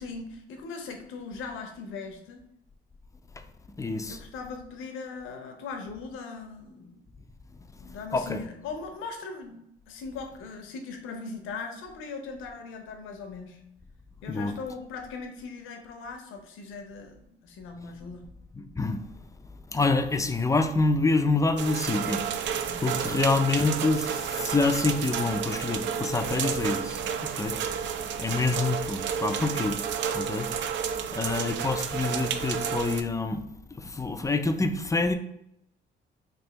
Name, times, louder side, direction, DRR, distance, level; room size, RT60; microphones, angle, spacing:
voice 1, 0.0-2.5 4.0-7.0 7.8-9.6 9.9-13.6 14.2-18.2 22.6-22.9, left 4 dB, 90° left, 0.7 m, -39 dB
voice 2, 3.8-4.2 8.1-8.4 14.3-14.5 18.6-19.0 19.7-22.2 22.8-24.1 24.4-27.6 28.2-29.8 30.1-30.5 31.1-33.4 34.0-35.1, left 3 dB, 15° left, 0.4 m, -26 dB
sound 1, 21.6-33.0, right 7 dB, 65° right, 0.4 m, -31 dB
3.3 x 2.6 x 3.9 m
cardioid pair, 90°, 20 cm